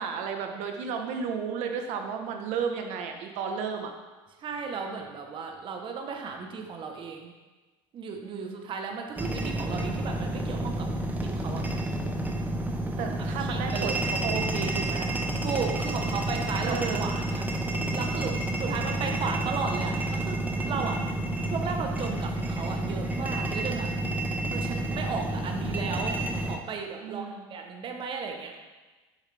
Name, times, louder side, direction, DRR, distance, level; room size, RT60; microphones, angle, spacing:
voice 1, 0.0-3.9 8.2-8.7 13.0-15.1 16.6-17.1 20.7-21.2 23.6-24.0 27.0-27.4, right 6 dB, 65° right, 4 dB, 1.1 m, -34 dB
voice 2, 4.4-7.3 7.9-10.9 11.2-11.6 13.4-14.0 15.4-17.5 17.9-18.3 18.6-20.4 20.7-21.0 21.5-23.9 24.5-28.5, right 5 dB, 40° right, 3 dB, 1.0 m, -35 dB
sound 1, 9.2-26.6, right 1 dB, 15° right, 0.8 m, -30 dB
8.0 x 6.6 x 3.4 m, 1.2 s
supercardioid pair, 110°, 13 cm